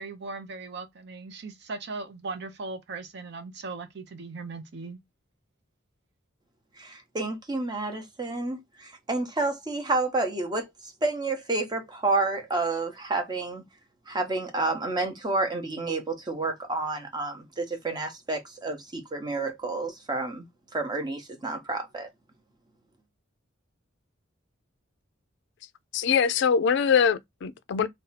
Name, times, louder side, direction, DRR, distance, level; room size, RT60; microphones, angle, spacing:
voice 1, 0.0-5.0, right 3 dB, 60° right, 0.6 m, -38 dB
voice 2, 6.8-10.7 11.0-13.6 14.1-20.4 20.7-22.1, right 3 dB, 20° right, 0.8 m, -30 dB
voice 3, 25.9-27.9, left 7 dB, 60° left, 0.3 m, -23 dB
2.7 x 2.2 x 4.0 m
head